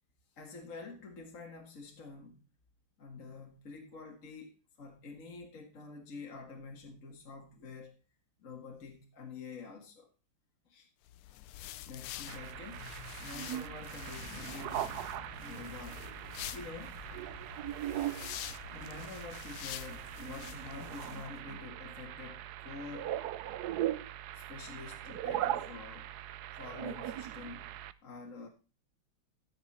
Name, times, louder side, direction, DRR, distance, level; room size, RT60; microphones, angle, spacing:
voice 1, 0.4-2.4 3.0-8.0 8.4-10.1 10.7-10.9 11.9-12.9 13.2-16.1 16.5-17.1 18.7-23.2 24.3-26.1 26.6-27.8 28.0-28.5, left 4 dB, 40° left, 2.0 m, -47 dB
sound 1, 11.1-21.3, left 13 dB, 85° left, 1.6 m, -47 dB
sound 2, 12.3-27.9, right 12 dB, 80° right, 0.8 m, -40 dB
sound 3, 13.8-19.0, left 2 dB, 60° left, 2.5 m, -54 dB
13.5 x 6.8 x 4.3 m
omnidirectional pair, 2.4 m